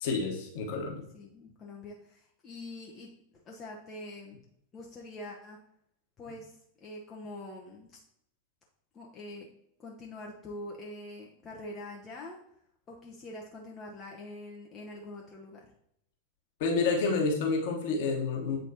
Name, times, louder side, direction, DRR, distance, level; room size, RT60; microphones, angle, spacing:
voice 1, 0.0-1.0 16.6-18.6, left 4 dB, 50° left, 1 dB, 1.3 m, -29 dB
voice 2, 1.1-4.4 4.7-5.6 6.2-8.0 8.9-9.5 9.8-12.4 12.9-15.7, left 2 dB, 25° left, -1 dB, 0.8 m, -44 dB
8.0 x 4.2 x 2.8 m, 0.73 s
figure-of-eight pair, 90°, 0 cm